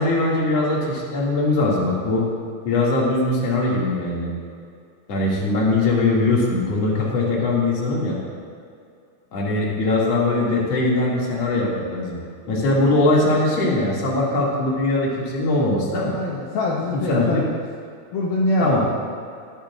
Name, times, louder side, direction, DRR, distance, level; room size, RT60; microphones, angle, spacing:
voice 1, 0.0-2.3 2.6-4.3 5.1-8.2 9.3-12.2 12.5-16.1 16.9-17.5 18.6-18.8, left 2 dB, 45° left, -4 dB, 2.4 m, -21 dB
voice 2, 16.1-17.6 18.1-19.1, left 1 dB, 75° left, -3 dB, 2.2 m, -25 dB
19.5 x 11.0 x 2.4 m, 2.3 s
omnidirectional pair, 5.5 m